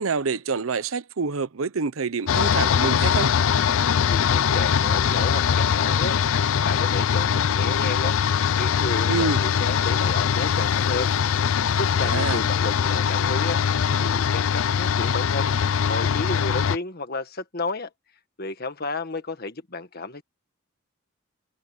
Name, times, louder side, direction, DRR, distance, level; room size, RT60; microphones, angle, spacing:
voice 1, 0.0-3.3 9.1-9.4 12.0-12.4, right 4 dB, 85° right, 0.8 m, -27 dB
sound 1, 2.3-16.8, left 7 dB, 75° left, 0.4 m, -22 dB
voice 2, 4.1-8.1 8.5-11.1 11.8-13.6 14.0-15.5 15.9-17.9 18.4-20.2, left 3 dB, 50° left, 1.7 m, -32 dB
head